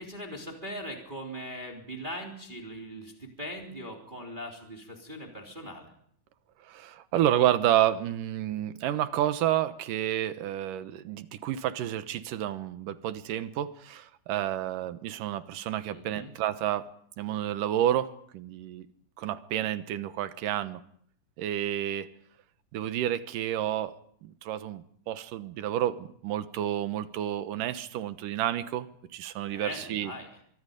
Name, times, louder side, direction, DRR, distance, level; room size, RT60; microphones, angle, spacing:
voice 1, 0.0-5.9 15.9-16.3 29.4-30.3, equal, 15° right, 1 dB, 3.2 m, -40 dB
voice 2, 6.6-16.9 17.2-18.9 19.2-20.8 21.4-22.1 22.7-23.9 24.2-30.1, right 12 dB, 80° right, 11 dB, 2.7 m, -30 dB
24.5 x 24.0 x 5.2 m, 0.64 s
omnidirectional pair, 3.8 m